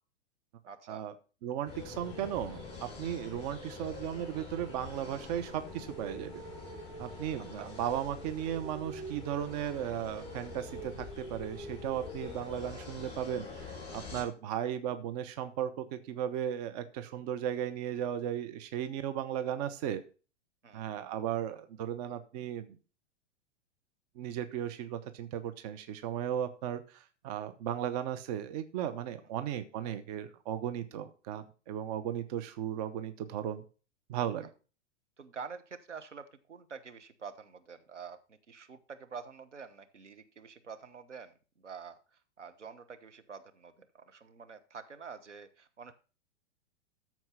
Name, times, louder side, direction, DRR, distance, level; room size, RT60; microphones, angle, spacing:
voice 1, 0.7-1.0 7.5-7.7 12.2-12.4 14.1-14.3 20.6-20.9 29.2-29.3 34.4-34.5 35.2-45.9, right 6 dB, 75° right, 8 dB, 1.3 m, -48 dB
voice 2, 1.4-6.4 7.0-20.0 20.7-22.8 24.2-33.6 34.1-34.5, right 10 dB, 35° right, 10 dB, 0.9 m, -36 dB
sound 1, 1.7-14.2, left 2 dB, 15° left, 6.3 m, -44 dB
13.5 x 4.6 x 5.7 m, 0.36 s
figure-of-eight pair, 105°, 36 cm